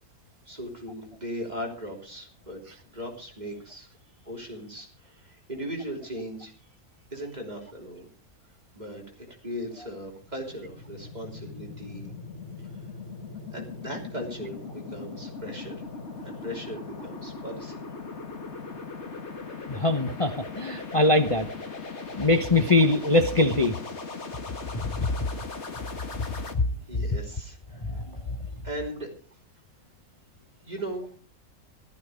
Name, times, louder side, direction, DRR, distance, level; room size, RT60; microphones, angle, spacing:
voice 1, 0.4-3.9 4.2-6.7 7.1-8.1 8.7-12.1 12.6-12.9 13.5-15.8 16.2-17.8 26.3-26.5 26.8-28.0 28.6-29.1 30.6-31.1, equal, 30° right, 0 dB, 3.5 m, -38 dB
sound 1, 10.1-26.5, left 4 dB, 50° left, 2.0 m, -39 dB
voice 2, 19.7-21.5 22.2-23.7 25.0-25.1 26.5-26.6 27.8-28.2, left 2 dB, 25° left, 6 dB, 0.8 m, -22 dB
14.5 x 13.0 x 5.0 m, 0.41 s
omnidirectional pair, 1.5 m